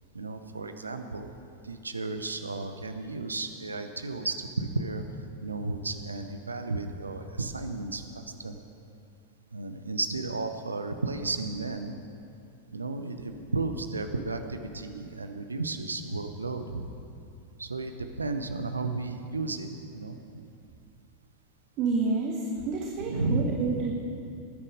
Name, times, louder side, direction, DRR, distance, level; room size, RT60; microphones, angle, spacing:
voice 1, 0.1-1.3 1.6-8.6 9.5-12.0 12.7-16.9 17.6-20.5 23.0-23.8, right 3 dB, 80° right, 8 dB, 0.9 m, -33 dB
voice 2, 21.8-23.9, right 4 dB, 40° right, 2 dB, 1.2 m, -29 dB
20.0 x 9.8 x 5.0 m, 2.6 s
figure-of-eight pair, 90°, 0 cm